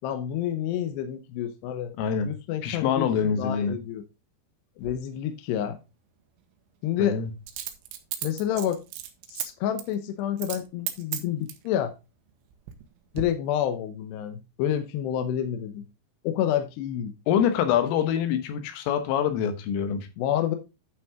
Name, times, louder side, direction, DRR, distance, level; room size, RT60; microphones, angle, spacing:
voice 1, 0.0-1.9 2.2-4.0 4.8-5.8 6.8-7.2 8.2-8.8 9.3-11.9 13.1-15.9 16.2-17.1 20.2-20.6, left 10 dB, 75° left, 2.6 m, -29 dB
voice 2, 2.0-2.3 2.6-3.8 7.0-7.3 17.3-20.1, left 8 dB, 90° left, 3.8 m, -25 dB
Coin (dropping), 4.8-5.0 7.5-9.5 9.8-10.0 10.4-10.6 10.9-11.7 12.3-12.8 13.1-13.2, right 12 dB, 90° right, 3.6 m, -34 dB
10.5 x 5.9 x 3.6 m
omnidirectional pair, 5.7 m